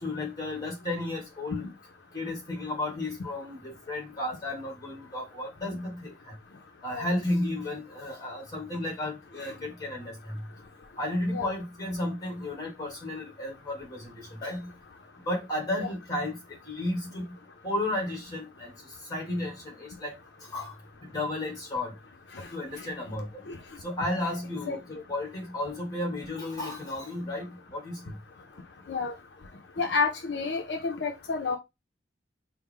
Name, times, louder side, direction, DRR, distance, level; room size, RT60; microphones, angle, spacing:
voice 1, 0.0-1.7 2.1-6.3 6.8-10.4 11.0-14.7 15.3-16.4 16.7-17.3 17.6-18.7 19.1-20.1 20.5-20.8 21.1-21.9 22.5-23.4 23.8-28.1, left 1 dB, 20° left, 1.5 m, -33 dB
voice 2, 29.8-31.6, left 4 dB, 70° left, 0.5 m, -29 dB
4.5 x 2.1 x 3.5 m
head